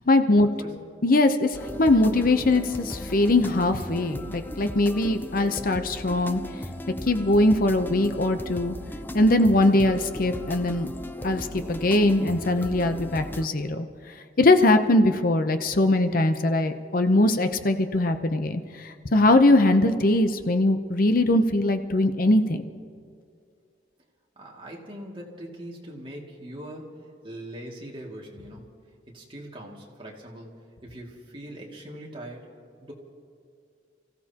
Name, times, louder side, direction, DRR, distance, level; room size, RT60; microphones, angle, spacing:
voice 1, 0.1-0.5 1.0-6.4 7.0-8.7 9.1-10.9 11.2-13.9 14.4-22.6, left 2 dB, 50° left, 8 dB, 0.7 m, -21 dB
sound 1, 1.5-13.5, left 1 dB, 10° left, 0.5 m, -37 dB
voice 2, 24.4-26.9 27.2-28.7 29.1-30.5 30.8-32.5 32.8-32.9, right 1 dB, 30° right, -3 dB, 2.4 m, -41 dB
29.5 x 16.0 x 2.9 m, 2.3 s
head